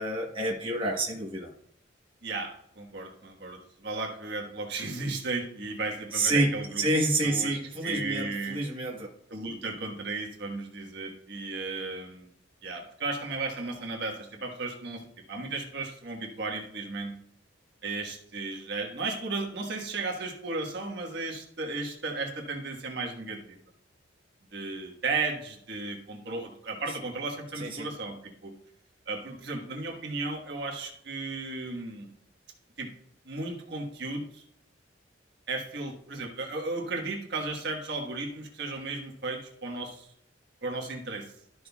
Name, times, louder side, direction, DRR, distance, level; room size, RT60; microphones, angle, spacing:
voice 1, 0.0-1.5 6.1-9.1 27.6-27.9, right 2 dB, 25° right, -2 dB, 1.2 m, -28 dB
voice 2, 2.2-6.9 7.2-8.6 9.3-12.3 12.6-15.0 15.3-17.1 17.8-23.6 24.5-28.1 28.4-28.5 29.1-32.1 32.8-32.9 33.2-34.4 35.5-40.1 40.6-41.3, right 3 dB, 60° right, 0 dB, 1.5 m, -35 dB
13.0 x 6.2 x 2.4 m, 0.72 s
head